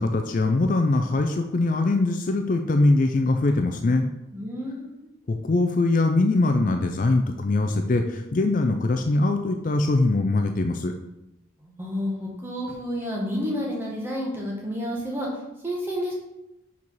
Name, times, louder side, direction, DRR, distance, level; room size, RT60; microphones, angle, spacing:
voice 1, 0.0-4.1 5.3-10.9, left 2 dB, 40° left, 5 dB, 0.4 m, -22 dB
voice 2, 4.3-5.1 11.6-15.3 15.6-16.1, equal, 10° right, -3 dB, 1.2 m, -30 dB
4.8 x 4.7 x 5.5 m, 0.94 s
head